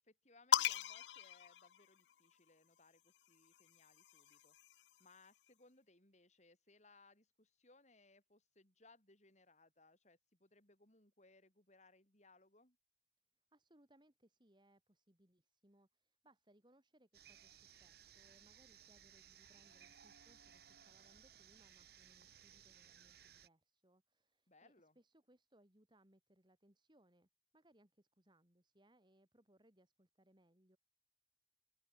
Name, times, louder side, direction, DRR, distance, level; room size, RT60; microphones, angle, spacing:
voice 1, 0.0-12.8 24.5-25.0, left 3 dB, 40° left, 6.1 m, -68 dB
sound 1, 0.5-2.3 3.4-5.1, left 9 dB, 70° left, 0.4 m, -39 dB
voice 2, 13.5-30.8, right 1 dB, 25° right, 2.9 m, -71 dB
sound 2, 17.1-23.5, right 9 dB, 60° right, 1.6 m, -62 dB
open air
head